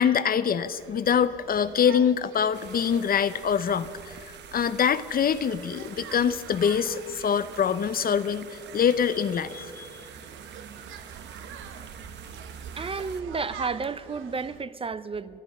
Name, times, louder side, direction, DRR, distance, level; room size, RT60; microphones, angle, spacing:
voice 1, 0.0-9.9, left 7 dB, 50° left, 0.7 m, -25 dB
sound 1, 0.6-14.6, right 7 dB, 80° right, 1.1 m, -45 dB
sound 2, 2.5-13.2, right 8 dB, 60° right, 1.0 m, -48 dB
voice 2, 12.7-15.4, right 4 dB, 30° right, 0.6 m, -32 dB
26.0 x 9.6 x 5.4 m
cardioid pair, 90°, 20 cm